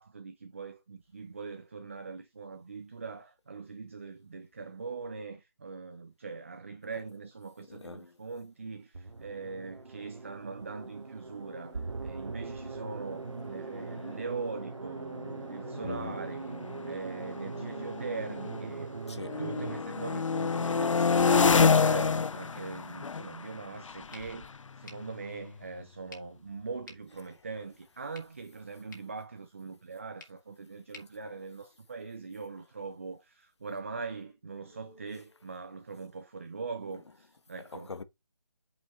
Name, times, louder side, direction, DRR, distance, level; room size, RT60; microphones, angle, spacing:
voice 1, 0.0-16.6 16.9-18.9 19.4-24.5 24.8-37.9, right 4 dB, 25° right, 0.5 m, -41 dB
voice 2, 7.7-8.2 15.8-16.3 19.1-19.6 27.1-27.6 28.7-28.9 31.0-31.1 34.5-35.2 36.9-37.3 37.5-38.0, left 4 dB, 60° left, 1.4 m, -45 dB
sound 1, 8.9-19.8, right 4 dB, 70° right, 1.1 m, -41 dB
sound 2, 13.4-13.5 13.8-14.1 14.9-18.8 19.2-25.8, left 5 dB, 85° left, 0.5 m, -29 dB
sound 3, 24.1-32.2, left 4 dB, 40° left, 2.3 m, -57 dB
7.5 x 5.8 x 4.2 m
figure-of-eight pair, 165°, 16 cm